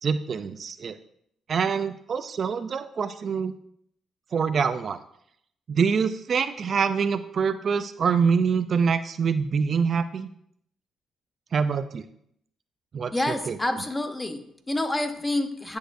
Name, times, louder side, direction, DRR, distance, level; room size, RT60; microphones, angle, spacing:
voice 1, 0.0-0.9 1.5-3.5 4.3-5.0 5.7-10.3 11.5-12.1 12.9-13.6, right 6 dB, 50° right, 11 dB, 0.4 m, -25 dB
voice 2, 13.1-15.8, left 1 dB, 15° left, 8 dB, 0.8 m, -28 dB
10.0 x 6.6 x 2.6 m, 0.71 s
cardioid pair, 90°, 0 cm